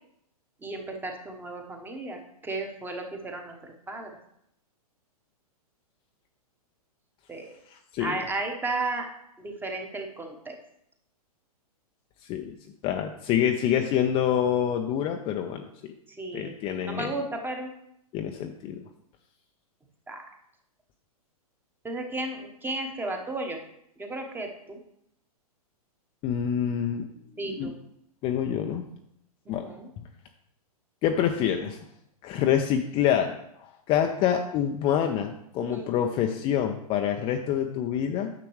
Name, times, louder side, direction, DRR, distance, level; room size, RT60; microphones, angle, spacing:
voice 1, 0.6-2.2 2.4-3.5 3.9-4.1 7.3-7.5 8.0-9.1 9.4-10.5 16.1-16.6 16.8-17.7 20.1-20.2 21.8-23.6 24.0-24.8 27.4-27.7 29.5-29.9 35.6-35.9, right 2 dB, 10° right, 3 dB, 1.1 m, -34 dB
voice 2, 7.7-8.2 12.3-12.5 12.8-15.7 16.3-17.1 18.1-18.8 26.2-27.1 27.4-27.7 28.2-28.8 29.5-29.7 31.0-31.8 32.2-33.3 33.6-38.3, left 9 dB, 25° left, 4 dB, 0.5 m, -26 dB
9.4 x 6.8 x 3.2 m, 0.76 s
hypercardioid pair, 115°, 20 cm